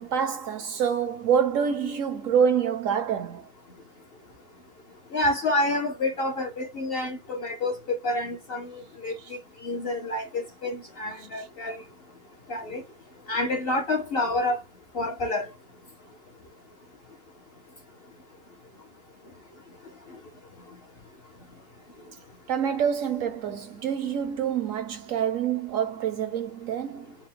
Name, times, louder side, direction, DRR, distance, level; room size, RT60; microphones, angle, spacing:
voice 1, 0.0-3.5 22.5-27.2, right 7 dB, 70° right, 0.8 m, -26 dB
voice 2, 5.1-11.8 12.5-12.8 13.3-14.6 14.9-15.5, left 2 dB, 55° left, 0.7 m, -28 dB
4.2 x 2.1 x 3.7 m
omnidirectional pair, 1.6 m